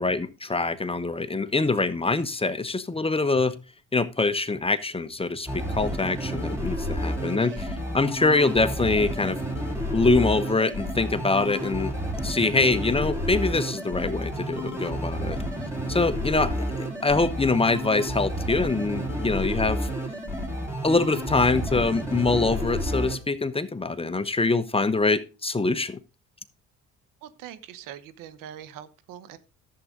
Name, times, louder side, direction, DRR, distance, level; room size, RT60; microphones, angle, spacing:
voice 1, 0.0-3.6 3.9-9.4 9.9-11.9 12.2-15.4 15.9-19.9 20.8-26.0, left 3 dB, 15° left, 1.0 m, -24 dB
sound 1, 5.5-23.2, equal, 10° right, 3.9 m, -30 dB
voice 2, 27.2-29.4, right 10 dB, 85° right, 1.1 m, -43 dB
11.5 x 7.8 x 3.8 m
supercardioid pair, 80°, 32 cm